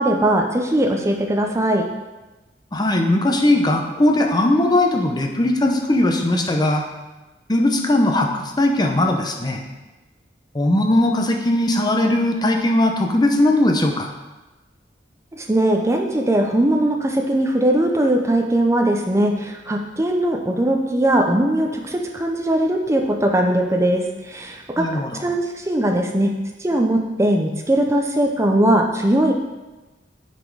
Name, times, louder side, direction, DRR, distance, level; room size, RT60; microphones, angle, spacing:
voice 1, 0.0-1.8 15.4-24.9 25.2-26.3 26.6-29.3, right 1 dB, 15° right, 2 dB, 0.6 m, -20 dB
voice 2, 2.7-6.8 7.5-9.6 10.5-14.1 24.8-25.2, left 1 dB, 25° left, 3 dB, 0.7 m, -19 dB
9.9 x 4.4 x 4.6 m, 1.1 s
head